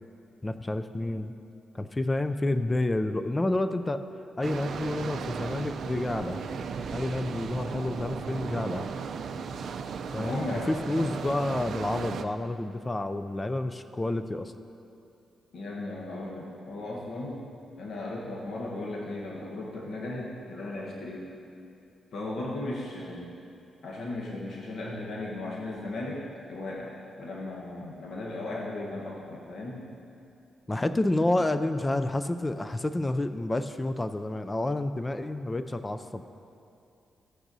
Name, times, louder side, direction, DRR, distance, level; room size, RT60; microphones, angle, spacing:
voice 1, 0.4-1.3 1.7-4.0 4.4-6.4 6.9-8.9 10.1-14.5 30.7-36.2, left 2 dB, 15° left, 10 dB, 0.3 m, -29 dB
sound 1, 4.4-12.2, right 5 dB, 65° right, 0.4 m, -36 dB
voice 2, 10.2-11.1 15.5-21.3 22.1-23.3 23.8-29.8, left 2 dB, 65° left, -3 dB, 1.1 m, -36 dB
14.5 x 8.8 x 2.7 m, 2.6 s
cardioid pair, 130°, 0 cm